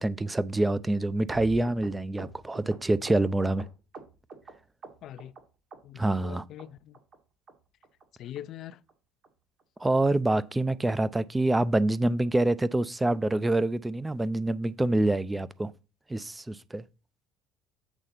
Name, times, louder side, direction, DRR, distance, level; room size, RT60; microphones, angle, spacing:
voice 1, 0.0-3.6 6.0-6.4 9.8-15.7 16.1-16.8, right 2 dB, 15° right, 0.6 m, -26 dB
sound 1, 1.3-4.5 4.8-5.4 5.7-6.3 6.6-6.7 6.9-7.2 7.5-7.6 7.8-8.0 8.3-8.4 8.7-8.9 9.2-9.3 9.6-9.8 10.1-10.2 10.5-10.7 11.0-11.1, right 4 dB, 50° right, 2.4 m, -45 dB
voice 2, 5.0-5.3 5.8-7.0 8.2-8.8, left 11 dB, 55° left, 0.5 m, -43 dB
8.2 x 3.9 x 5.8 m
hypercardioid pair, 70°, 0 cm